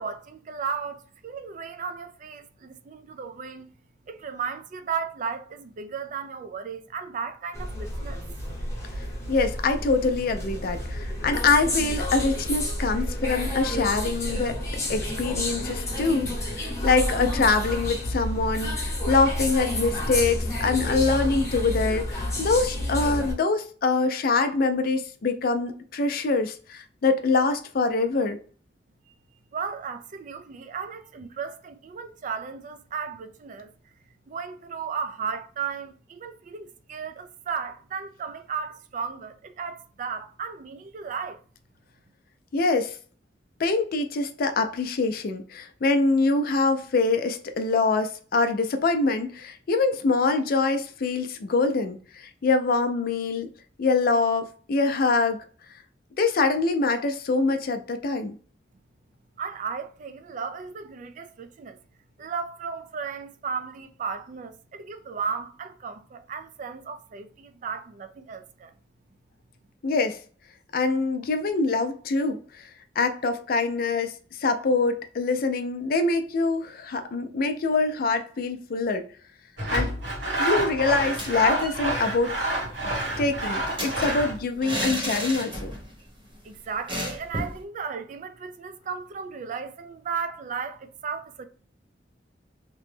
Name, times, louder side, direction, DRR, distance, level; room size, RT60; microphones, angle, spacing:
voice 1, 0.0-3.7 4.1-8.2 29.5-33.7 34.3-41.4 59.4-61.8 62.2-68.7 86.4-91.5, right 6 dB, 45° right, 0.3 m, -35 dB
sound 1, 7.5-23.3, left 1 dB, 15° left, 1.0 m, -30 dB
voice 2, 9.3-14.6 14.9-28.4 42.5-43.0 43.6-53.5 53.8-55.4 56.2-58.4 69.8-70.2 70.7-72.6 73.0-79.1 79.7-79.9 80.4-82.4 83.2-85.7, left 3 dB, 55° left, 0.4 m, -24 dB
Sawing, 79.6-84.4, right 1 dB, 85° right, 1.5 m, -28 dB
sound 2, 81.1-81.8 82.1-82.2 82.5-86.0 86.2-86.4 86.9-87.6, equal, 25° right, 0.9 m, -33 dB
2.9 x 2.1 x 3.2 m
head